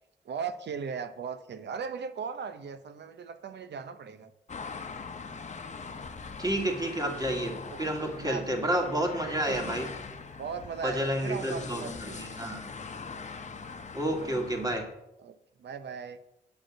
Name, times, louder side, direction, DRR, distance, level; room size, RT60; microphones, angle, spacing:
voice 1, 0.2-4.3 7.0-7.2 7.7-7.8 8.2-8.9 9.3-9.7 10.4-12.4 14.0-14.4 15.2-16.2, right 6 dB, 75° right, 11 dB, 0.8 m, -38 dB
sound 1, 4.5-14.8, left 5 dB, 40° left, 1.0 m, -42 dB
voice 2, 6.4-9.9 10.8-12.7 13.9-14.9, right 1 dB, 20° right, 2 dB, 2.4 m, -30 dB
8.5 x 5.2 x 7.4 m, 0.87 s
cardioid pair, 60°, 18 cm